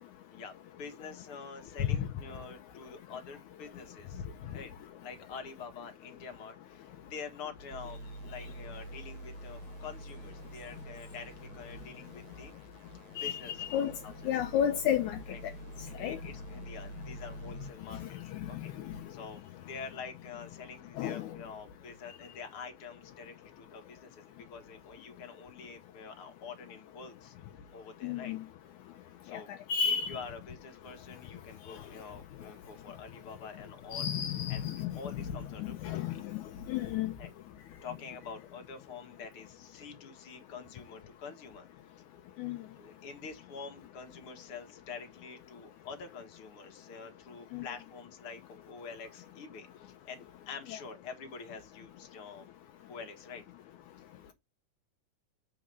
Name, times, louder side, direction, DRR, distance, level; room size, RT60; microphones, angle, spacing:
voice 1, 0.3-4.2 4.5-4.7 5.0-12.6 13.2-14.1 15.3-15.4 15.8-18.2 18.5-24.3 24.5-27.3 27.7-28.3 29.2-29.5 29.9-34.1 34.5-34.7 34.9-36.2 37.2-37.3 37.8-41.7 42.7-52.5 52.9-53.4 54.0-54.3, left 5 dB, 50° left, 1.9 m, -47 dB
sound 1, 7.7-17.7, right 2 dB, 65° right, 1.7 m, -47 dB
voice 2, 13.2-13.9 14.3-15.2 16.0-16.2 21.0-21.3 28.0-28.4 29.7-30.1 33.9-34.9 35.6-36.4 36.7-37.1 42.4-42.6 47.5-47.6, left 9 dB, 75° left, 2.0 m, -31 dB
7.3 x 4.8 x 5.4 m
omnidirectional pair, 3.8 m